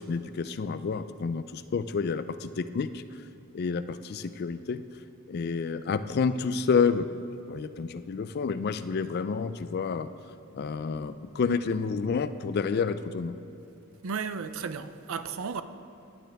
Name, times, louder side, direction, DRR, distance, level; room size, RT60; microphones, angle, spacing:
voice 1, 0.0-3.0 3.5-4.8 5.3-7.1 7.5-10.1 10.5-13.4, left 5 dB, 45° left, 0.3 m, -29 dB
voice 2, 14.0-15.6, right 5 dB, 65° right, 0.5 m, -34 dB
15.0 x 10.0 x 3.4 m
head